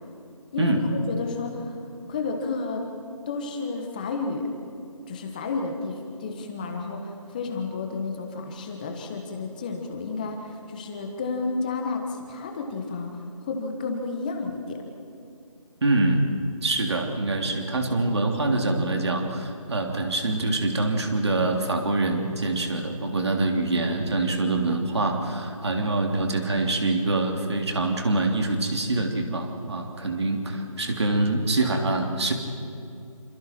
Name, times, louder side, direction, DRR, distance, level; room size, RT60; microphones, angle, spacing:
voice 1, 0.5-1.8 2.1-2.9 3.3-4.5 5.1-13.1 13.4-14.8, left 4 dB, 15° left, 3 dB, 1.4 m, -31 dB
voice 2, 15.8-16.3 16.6-32.3, right 2 dB, 50° right, 3 dB, 3.2 m, -25 dB
28.5 x 26.5 x 4.5 m, 2.5 s
figure-of-eight pair, 170°, 18 cm